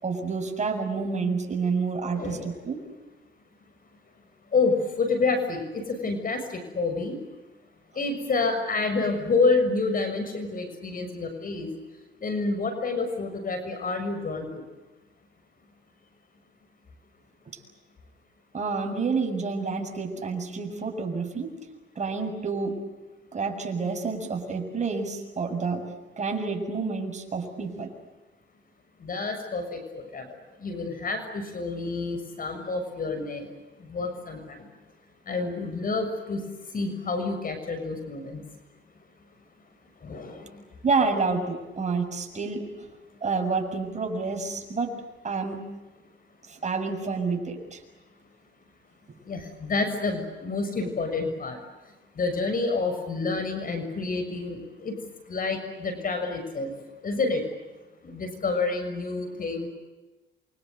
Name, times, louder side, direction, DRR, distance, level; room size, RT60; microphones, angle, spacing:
voice 1, 0.0-2.8 17.5-17.6 18.5-21.5 22.0-22.8 23.3-25.9 26.2-27.9 40.8-42.6 43.2-45.0 45.2-45.6 46.5-47.8, right 4 dB, 35° right, 4 dB, 7.4 m, -29 dB
voice 2, 2.1-2.5 4.5-7.2 7.9-11.7 12.2-14.6 29.0-30.3 30.6-33.5 33.8-34.7 35.3-36.4 36.7-38.4 40.0-40.6 49.3-51.6 52.2-55.0 55.3-56.7 57.0-57.4 58.0-59.7, left 3 dB, 45° left, 7 dB, 6.8 m, -28 dB
29.0 x 25.5 x 8.1 m, 1.1 s
cardioid pair, 90°, 20 cm